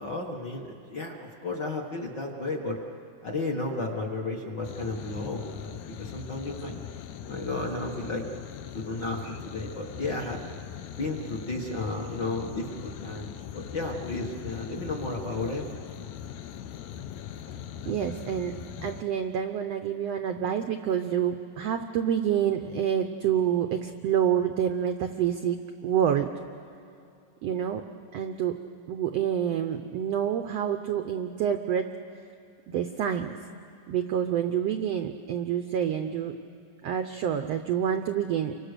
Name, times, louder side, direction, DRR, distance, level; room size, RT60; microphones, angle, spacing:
voice 1, 0.0-2.8 3.2-6.7 7.2-8.3 8.7-10.4 11.0-15.6, left 2 dB, 45° left, 0 dB, 1.6 m, -33 dB
sound 1, 4.6-19.0, left 9 dB, 75° left, 2.0 m, -41 dB
voice 2, 17.9-26.3 27.4-27.8 28.1-28.6 28.9-31.9 32.7-33.3 33.9-36.3 36.8-38.5, right 9 dB, 80° right, 7 dB, 1.4 m, -27 dB
29.5 x 24.0 x 6.7 m, 2.5 s
omnidirectional pair, 3.8 m